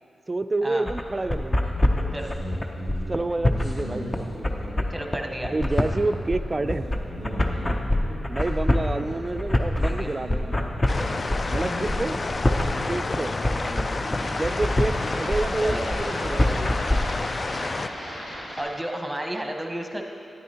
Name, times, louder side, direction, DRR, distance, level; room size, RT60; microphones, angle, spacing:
voice 1, 0.3-1.8 2.9-4.9 5.5-6.9 8.3-10.7 11.5-12.2 12.9-13.3 14.3-16.7, right 2 dB, 35° right, 11 dB, 0.3 m, -29 dB
sound 1, 0.9-17.0, left 1 dB, 30° left, 0.7 m, -25 dB
sound 2, 1.6-18.6, equal, 90° left, 2.2 m, -38 dB
voice 2, 4.9-5.5 9.8-10.1 15.6-15.9 16.5-16.6 18.4-20.0, right 1 dB, 10° right, 3 dB, 1.0 m, -32 dB
sound 3, 10.9-17.9, left 3 dB, 50° left, 0.3 m, -30 dB
9.5 x 9.3 x 2.9 m, 2.6 s
supercardioid pair, 40°, 0 cm